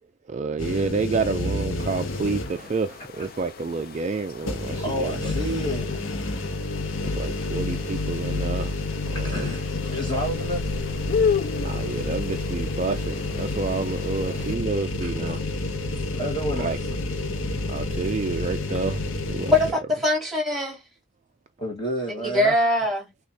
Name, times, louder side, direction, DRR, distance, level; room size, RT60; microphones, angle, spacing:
voice 1, 0.3-5.3 7.0-8.8 9.1-9.5 11.5-15.4 16.6-16.8 17.7-19.5, right 4 dB, 35° right, 0.3 m, -29 dB
sound 1, 0.6-2.8 3.2-3.3 4.4-19.7, left 3 dB, 65° left, 0.8 m, -29 dB
sound 2, 1.8-14.6, left 6 dB, 45° left, 0.4 m, -34 dB
voice 2, 4.8-6.0 8.0-8.1 9.1-10.6 15.0-15.4 16.2-16.7 21.6-22.5, equal, 20° left, 1.3 m, -30 dB
sound 3, 9.9-19.3, equal, 80° left, 1.3 m, -37 dB
voice 3, 19.5-20.8 22.2-23.1, left 1 dB, ahead, 2.6 m, -22 dB
6.4 x 2.4 x 2.7 m
head